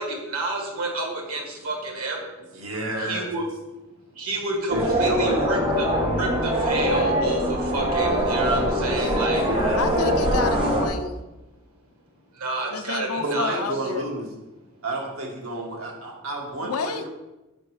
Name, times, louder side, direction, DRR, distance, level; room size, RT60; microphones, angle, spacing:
voice 1, 0.0-2.3 3.0-3.4 4.2-5.9 6.2-9.4 12.4-13.6, right 2 dB, 85° right, 1 dB, 1.7 m, -29 dB
voice 2, 2.5-3.3 4.7-5.7 7.1-7.3 8.4-9.8 13.2-14.3 14.8-17.1, right 1 dB, 70° right, -1 dB, 1.6 m, -31 dB
sound 1, 4.7-10.9, equal, 25° right, 1.4 m, -23 dB
voice 3, 9.7-11.2 12.7-14.1 16.6-17.1, left 5 dB, 85° left, 9 dB, 0.5 m, -30 dB
5.3 x 5.1 x 4.8 m, 1.0 s
head